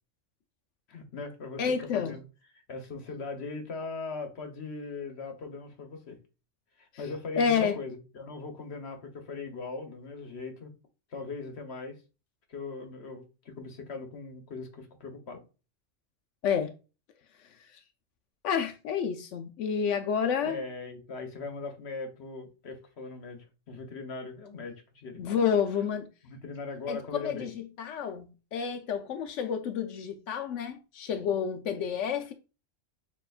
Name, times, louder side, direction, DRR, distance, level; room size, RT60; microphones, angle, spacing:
voice 1, 0.9-2.2 2.6-6.2 6.8-10.7 11.1-12.0 12.5-15.4 20.4-25.3 26.2-27.5, left 3 dB, 60° left, 1.2 m, -39 dB
voice 2, 1.6-2.2 7.4-7.8 16.4-16.7 18.4-20.6 25.2-26.1 26.9-32.3, left 7 dB, 80° left, 0.9 m, -29 dB
6.6 x 2.9 x 2.3 m
omnidirectional pair, 1.2 m